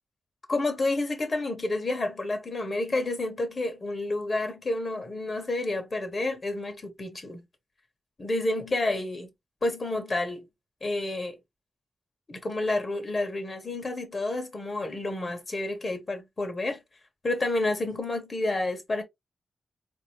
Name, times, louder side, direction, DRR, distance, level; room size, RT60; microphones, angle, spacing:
voice 1, 0.5-7.4 8.2-9.3 9.6-10.5 10.8-11.4 12.3-16.8 17.2-19.0, left 2 dB, 45° left, 1.1 m, -29 dB
3.9 x 2.6 x 3.0 m
wide cardioid pair, 85°, 0 cm